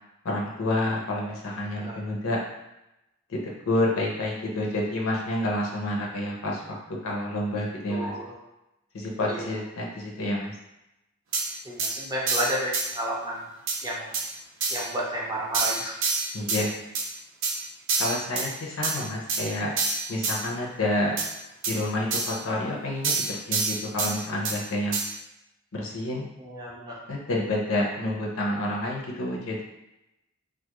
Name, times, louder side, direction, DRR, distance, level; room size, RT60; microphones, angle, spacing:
voice 1, 0.2-2.4 3.3-3.4 3.7-6.8 7.0-8.1 8.9-10.5 16.3-16.8 18.0-19.7 20.1-21.1 21.7-25.0 25.7-26.3 27.1-29.6, left 1 dB, 75° left, -2 dB, 0.6 m, -29 dB
voice 2, 7.9-8.3 9.3-9.6 11.6-13.5 13.8-14.1 14.7-16.0 26.4-27.0, right 1 dB, 20° right, -5 dB, 0.5 m, -32 dB
sound 1, 11.3-11.4 11.8-11.9 12.3-12.9 13.7-13.8 14.1-14.2 14.6-14.8 15.5-16.6 16.9-17.1 17.4-17.5 17.9-18.5 18.8-18.9 19.3-19.4 19.8-20.4 21.2-21.3 21.6-21.7 22.1-22.3 23.0-24.1 24.4-24.6 24.9-25.0, right 4 dB, 65° right, 0.5 m, -26 dB
2.3 x 2.1 x 2.9 m, 0.91 s
head